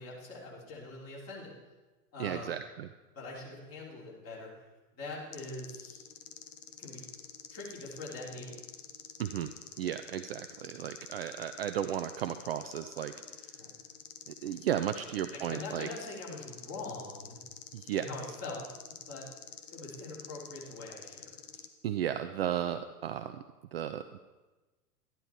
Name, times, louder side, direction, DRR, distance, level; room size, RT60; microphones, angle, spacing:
voice 1, 0.0-1.6 2.1-2.6 3.2-4.5 5.0-6.0 6.8-7.1 7.5-8.6 13.5-13.7 15.4-17.4 17.9-19.3 19.7-21.5, left 2 dB, 30° left, -4 dB, 3.7 m, -43 dB
voice 2, 2.2-2.9 9.2-9.5 9.8-13.1 14.3-15.9 17.7-18.1 21.8-23.4 23.7-24.2, right 10 dB, 40° right, 9 dB, 0.4 m, -34 dB
sound 1, 5.3-21.7, left 8 dB, 50° left, 1.2 m, -49 dB
12.5 x 11.0 x 4.5 m, 1.2 s
figure-of-eight pair, 100°, 48 cm